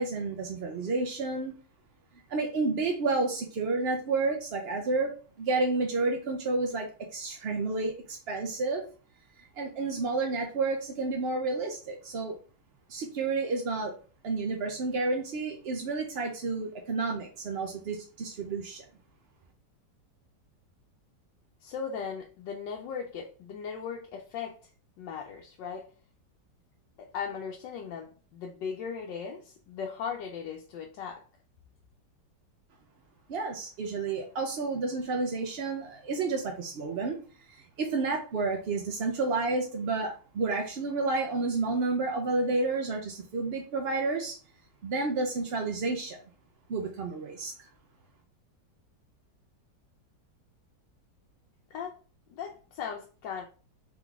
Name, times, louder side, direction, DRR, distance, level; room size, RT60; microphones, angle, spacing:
voice 1, 0.0-1.5 2.3-5.1 5.4-8.8 9.4-12.4 12.9-13.9 14.2-18.8 33.3-37.2 37.5-44.4 44.8-46.2 46.7-47.7, right 3 dB, 60° right, 0.6 m, -30 dB
voice 2, 21.6-24.7 25.0-25.9 27.0-31.2 51.7-52.0 52.3-53.4, left 6 dB, 90° left, 1.3 m, -38 dB
3.8 x 3.7 x 3.5 m
omnidirectional pair, 1.9 m